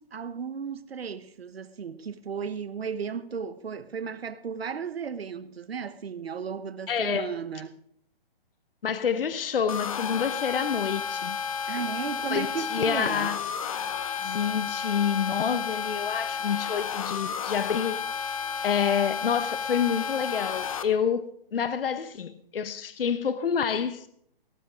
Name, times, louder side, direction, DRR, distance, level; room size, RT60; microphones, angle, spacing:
voice 1, 0.0-7.8 11.7-13.3, right 6 dB, 80° right, 1.1 m, -35 dB
voice 2, 6.9-7.3 8.8-11.4 12.3-13.4 14.2-18.0 18.6-21.3 21.5-24.1, left 7 dB, 65° left, 1.0 m, -28 dB
sound 1, 9.7-20.8, left 7 dB, 35° left, 0.8 m, -32 dB
18.5 x 8.4 x 5.1 m
hypercardioid pair, 165°, 30 cm